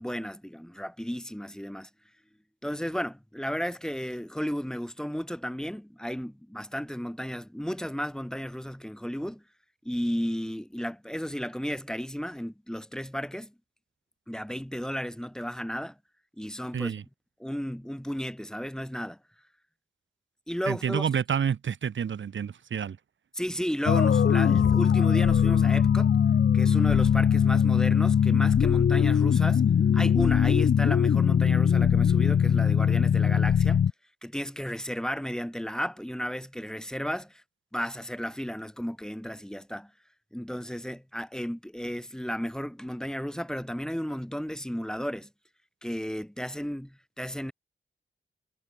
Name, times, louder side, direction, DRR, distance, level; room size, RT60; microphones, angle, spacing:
voice 1, 0.0-1.9 2.6-9.4 9.8-13.5 14.3-15.9 16.4-16.9 17.4-19.2 20.5-21.0 23.3-26.2 26.5-29.6 29.9-33.8 34.2-37.4 37.7-39.9 40.3-45.3 45.8-47.5, equal, 5° left, 4.7 m, -33 dB
voice 2, 20.7-23.0, right 7 dB, 80° right, 3.2 m, -29 dB
sound 1, 23.9-33.9, left 7 dB, 65° left, 0.8 m, -21 dB
cardioid pair, 60°, 19 cm